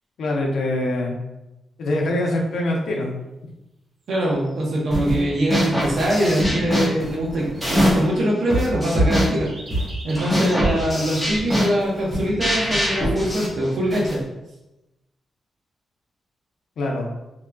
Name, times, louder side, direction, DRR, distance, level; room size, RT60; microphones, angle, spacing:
voice 1, 0.2-1.2 1.8-3.1 16.8-17.1, left 1 dB, 80° left, 0 dB, 0.7 m, -23 dB
voice 2, 4.1-9.5 10.0-14.2, right 1 dB, 70° right, -3 dB, 1.0 m, -23 dB
sound 1, 4.2-4.7 6.8-8.6 9.3-12.4, right 1 dB, 50° right, 0.8 m, -42 dB
sound 2, 4.9-5.2 5.5-8.1 8.5-14.2, equal, ahead, 1.3 m, -23 dB
3.7 x 3.1 x 2.2 m, 0.97 s
wide cardioid pair, 135°, 0 cm